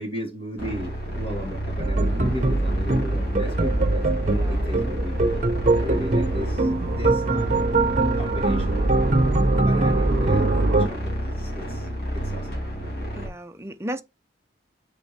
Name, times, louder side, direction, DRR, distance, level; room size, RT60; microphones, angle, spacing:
voice 1, 0.0-4.1 4.5-5.4 5.8-7.8 8.2-9.2 9.6-10.5 10.8-11.9 12.1-12.6, equal, 35° left, 2.8 m, -36 dB
sound 1, 0.6-13.3, equal, 60° left, 3.2 m, -30 dB
sound 2, 1.8-10.8, right 2 dB, 40° right, 0.9 m, -22 dB
sound 3, 2.8-10.9, right 3 dB, 85° right, 0.6 m, -35 dB
voice 2, 4.2-4.6 13.1-14.0, equal, 15° right, 0.6 m, -34 dB
6.5 x 5.2 x 3.3 m
head